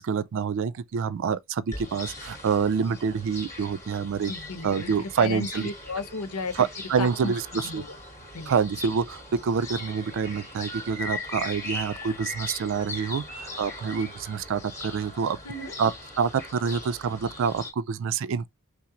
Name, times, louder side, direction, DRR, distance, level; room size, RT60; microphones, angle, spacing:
voice 1, 0.0-4.3 4.6-5.7 6.6-7.8 8.5-15.4 15.8-15.9 16.2-18.5, right 6 dB, 60° right, 0.4 m, -27 dB
sound 1, 1.7-17.7, left 2 dB, 15° left, 2.5 m, -39 dB
voice 2, 4.3-6.7 7.0-7.3 7.6-8.0 8.3-8.5 15.4-15.7, left 3 dB, 80° left, 0.9 m, -34 dB
5.7 x 2.0 x 3.8 m
head